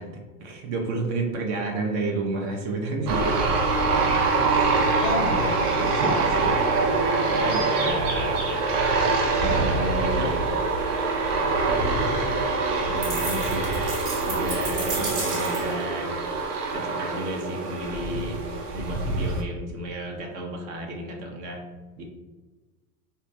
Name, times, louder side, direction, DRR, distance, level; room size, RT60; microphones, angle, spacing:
voice 1, 0.0-3.4 5.8-6.5 6.8-8.5 9.4-10.4 12.9-13.7 14.3-16.1 16.7-21.6 22.0-22.1, right 2 dB, 40° right, 2 dB, 0.5 m, -31 dB
sound 1, 3.1-19.4, right 3 dB, 85° right, 0.6 m, -24 dB
voice 2, 4.3-5.6 5.9-6.4 11.7-12.5, left 4 dB, 55° left, 4 dB, 0.5 m, -33 dB
sound 2, 13.0-15.8, right 3 dB, 60° right, 1.2 m, -33 dB
2.2 x 2.1 x 2.6 m, 1.2 s
hypercardioid pair, 100°, 45 cm